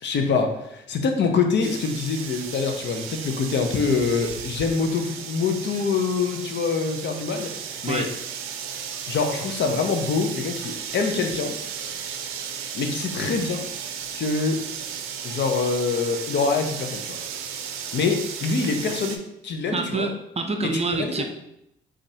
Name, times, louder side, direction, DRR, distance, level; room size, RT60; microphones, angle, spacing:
voice 1, 0.0-7.5 7.8-8.1 9.1-11.6 12.7-13.7 14.1-14.6 15.2-17.2 17.9-20.1 20.6-21.2, left 4 dB, 60° left, 4 dB, 0.7 m, -25 dB
sound 1, 1.6-19.2, right 7 dB, 85° right, 0.5 m, -35 dB
voice 2, 19.7-21.2, right 3 dB, 30° right, 5 dB, 0.6 m, -27 dB
5.3 x 2.5 x 2.8 m, 0.80 s
supercardioid pair, 70°, 21 cm